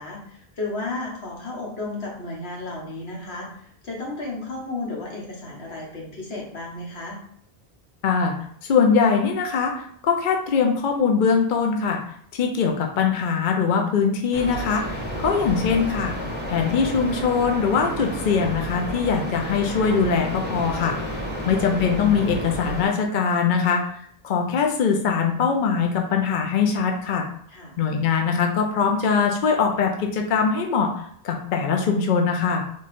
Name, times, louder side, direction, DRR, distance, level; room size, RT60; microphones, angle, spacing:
voice 1, 0.0-7.2 21.3-21.7 27.5-27.7, left 2 dB, 75° left, -2 dB, 1.5 m, -33 dB
voice 2, 8.0-8.4 8.6-12.0 12.3-16.1 16.5-20.9 21.5-23.8 24.2-27.3 27.8-30.9 31.2-32.6, left 6 dB, 55° left, 2 dB, 0.6 m, -22 dB
sound 1, 14.3-22.9, equal, 10° right, 0.9 m, -31 dB
3.7 x 3.1 x 4.1 m, 0.63 s
omnidirectional pair, 1.1 m